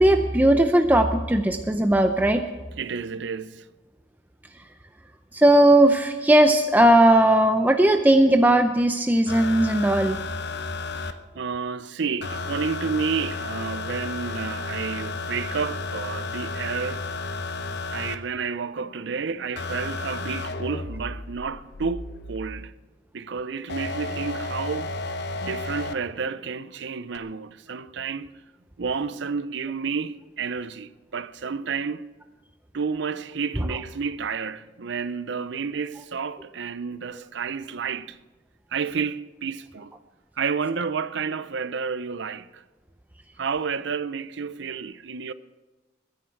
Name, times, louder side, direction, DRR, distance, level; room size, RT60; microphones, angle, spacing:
voice 1, 0.0-2.4 5.3-10.2, right 1 dB, 10° right, 0.5 m, -18 dB
voice 2, 2.8-3.6 11.0-17.0 17.9-22.7 23.1-24.9 25.4-28.4 28.8-32.1 32.7-38.2 38.7-39.9 40.4-42.6 43.4-45.3, right 5 dB, 70° right, 0.6 m, -30 dB
sound 1, 9.3-11.1 12.2-18.2 19.6-22.5 23.7-25.9 27.1-27.2, left 3 dB, 65° left, 0.8 m, -32 dB
22.0 x 10.0 x 4.6 m
head